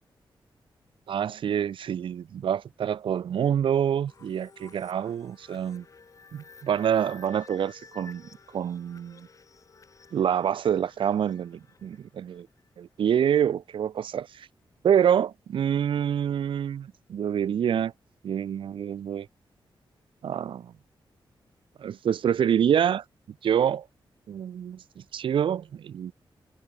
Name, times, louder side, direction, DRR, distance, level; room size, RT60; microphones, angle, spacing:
voice 1, 1.1-5.8 6.3-9.3 10.1-12.5 12.8-14.5 14.8-17.9 18.2-19.3 20.2-20.7 21.8-23.0 23.4-23.8 24.3-26.1, right 9 dB, 70° right, 0.7 m, -26 dB
sound 1, 4.1-12.7, left 5 dB, 40° left, 1.7 m, -53 dB
wide cardioid pair, 145°, 9 cm